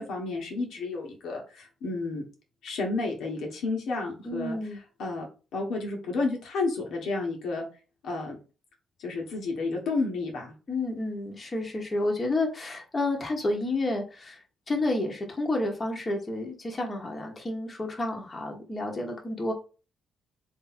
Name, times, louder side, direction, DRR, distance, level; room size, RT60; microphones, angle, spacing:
voice 1, 0.0-2.2 2.6-4.6 5.0-5.3 5.5-7.7 8.0-8.4 9.0-10.5, left 3 dB, 75° left, 0 dB, 1.3 m, -31 dB
voice 2, 4.2-4.8 10.7-19.5, left 2 dB, 30° left, 1 dB, 1.2 m, -30 dB
3.3 x 2.8 x 4.2 m, 0.34 s
cardioid pair, 90°, 0 cm